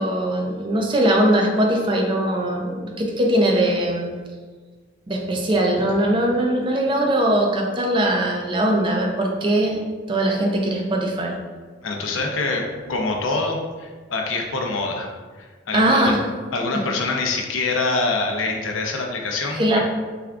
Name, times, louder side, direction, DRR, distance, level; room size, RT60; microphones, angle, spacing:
voice 1, 0.0-4.1 5.1-9.8 10.1-11.4 15.7-16.2 19.5-19.8, right 1 dB, 25° right, 0 dB, 0.4 m, -20 dB
voice 2, 11.8-15.1 15.4-16.1 16.5-19.8, left 3 dB, 90° left, 1 dB, 0.6 m, -25 dB
3.4 x 2.3 x 3.5 m, 1.5 s
head